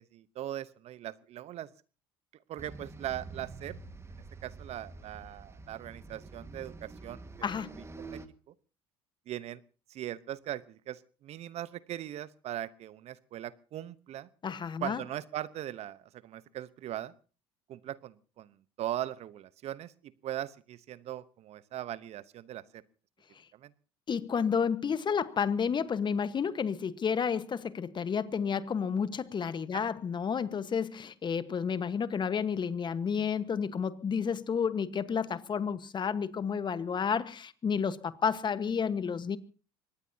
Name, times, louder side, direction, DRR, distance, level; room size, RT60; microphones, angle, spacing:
voice 1, 0.0-1.7 2.5-3.8 4.4-7.7 8.1-8.2 8.5-8.6 9.3-9.6 9.9-14.3 14.8-17.1 17.7-22.8 23.5-23.7 29.7-29.9, right 12 dB, 55° right, 0.9 m, -40 dB
sound 1, 2.6-8.3, right 3 dB, 20° right, 1.7 m, -47 dB
voice 2, 7.4-7.8 14.4-15.0 24.1-39.4, left 6 dB, 35° left, 1.3 m, -31 dB
24.5 x 19.5 x 2.8 m
hypercardioid pair, 70°, 13 cm